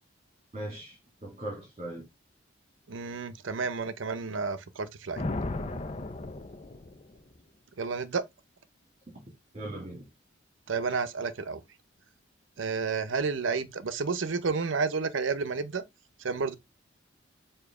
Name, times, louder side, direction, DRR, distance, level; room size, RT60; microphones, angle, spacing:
voice 1, 0.5-2.0 9.5-10.1, right 1 dB, 35° right, 2.2 m, -39 dB
voice 2, 2.9-5.2 7.8-8.2 10.7-11.6 12.6-15.8 16.2-16.5, right 4 dB, 75° right, 0.7 m, -31 dB
Thunder, 5.2-7.4, left 2 dB, 30° left, 0.6 m, -35 dB
7.0 x 2.9 x 4.8 m
head